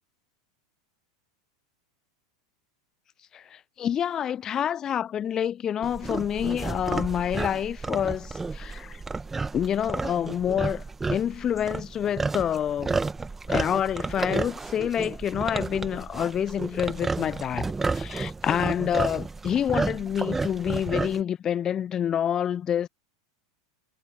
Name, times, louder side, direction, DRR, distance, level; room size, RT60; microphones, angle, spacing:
voice 1, 3.3-9.0 9.5-10.8 11.1-13.0 13.5-17.7 17.9-22.9, left 9 dB, 30° left, 0.5 m, -27 dB
sound 1, 5.8-21.2, right 3 dB, 15° right, 1.8 m, -31 dB
figure-of-eight pair, 85°, 2 cm